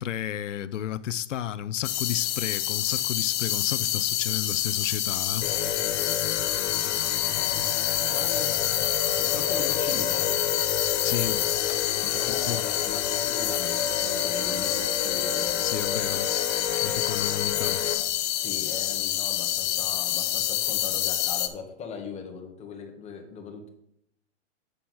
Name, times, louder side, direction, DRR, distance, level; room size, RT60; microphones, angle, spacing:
voice 1, 0.0-5.5 11.0-11.4 12.3-12.6 15.6-16.3 16.7-17.8, left 10 dB, 85° left, 0.5 m, -32 dB
sound 1, 1.8-21.5, left 13 dB, 40° left, 0.8 m, -27 dB
sound 2, 5.4-17.9, left 7 dB, 60° left, 1.6 m, -32 dB
voice 2, 7.2-8.8 9.2-10.6 12.0-15.7 18.3-23.7, left 5 dB, 20° left, 1.4 m, -40 dB
7.9 x 4.4 x 5.6 m
hypercardioid pair, 130°, 36 cm